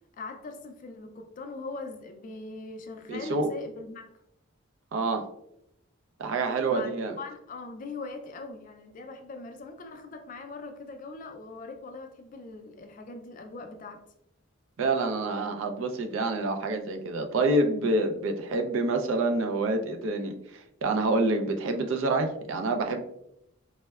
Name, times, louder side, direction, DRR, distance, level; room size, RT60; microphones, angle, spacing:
voice 1, 0.1-4.1 6.6-14.0, left 3 dB, 40° left, 0.3 m, -41 dB
voice 2, 3.1-3.5 4.9-5.2 6.2-7.1 14.8-23.0, right 2 dB, 65° right, 0.4 m, -27 dB
4.2 x 2.1 x 2.2 m
head